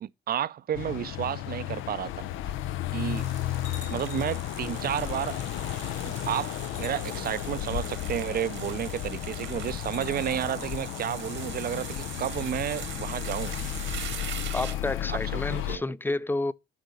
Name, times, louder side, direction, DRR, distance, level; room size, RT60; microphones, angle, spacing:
voice 1, 0.0-2.5 2.9-3.3 3.9-5.4 6.0-13.5 15.1-15.8, right 10 dB, 50° right, 0.5 m, -32 dB
sound 1, 0.7-15.8, left 13 dB, 85° left, 0.5 m, -34 dB
sound 2, 3.2-15.0, right 10 dB, 75° right, 1.4 m, -42 dB
sound 3, 3.6-4.5 5.6-5.7 6.6-7.5 9.8-10.7, left 5 dB, 35° left, 1.3 m, -48 dB
voice 2, 14.5-16.5, left 2 dB, 10° left, 0.4 m, -30 dB
8.3 x 4.0 x 6.4 m
cardioid pair, 90°, 20 cm